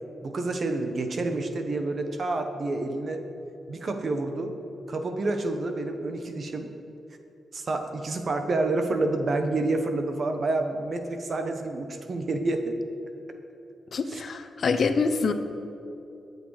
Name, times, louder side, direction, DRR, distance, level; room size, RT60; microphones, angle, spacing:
voice 1, 0.2-3.2 3.7-4.5 4.9-6.7 7.5-12.8 14.1-14.2, right 2 dB, 45° right, 6 dB, 1.3 m, -28 dB
voice 2, 13.9-15.3, left 4 dB, 55° left, 8 dB, 0.9 m, -25 dB
21.0 x 8.2 x 5.0 m, 2.9 s
wide cardioid pair, 130°, 0 cm